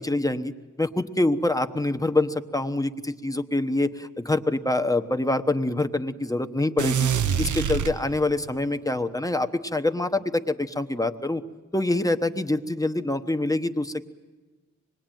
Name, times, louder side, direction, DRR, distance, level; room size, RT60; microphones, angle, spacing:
voice 1, 0.0-7.1 7.4-11.4 11.7-14.1, left 2 dB, 10° left, 8 dB, 1.0 m, -25 dB
sound 1, 6.8-8.6, right 8 dB, 80° right, 0.7 m, -26 dB
25.5 x 21.0 x 9.1 m, 1.3 s
wide cardioid pair, 105°, 30 cm